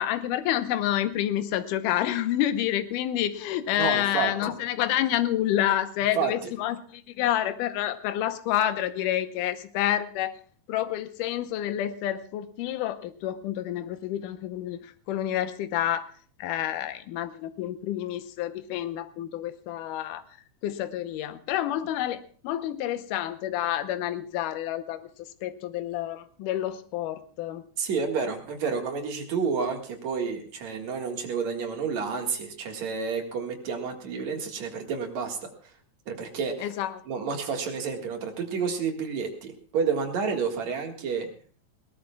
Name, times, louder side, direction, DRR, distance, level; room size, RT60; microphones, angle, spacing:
voice 1, 0.0-10.4 10.7-16.1 16.4-20.2 20.6-25.0 25.4-27.6 36.6-36.9, left 12 dB, 75° left, 10 dB, 2.3 m, -28 dB
voice 2, 3.8-4.5 6.1-6.3 27.8-35.5 36.1-36.7 37.1-41.3, right 5 dB, 60° right, 3 dB, 2.9 m, -30 dB
21.0 x 17.5 x 2.3 m, 0.42 s
omnidirectional pair, 4.0 m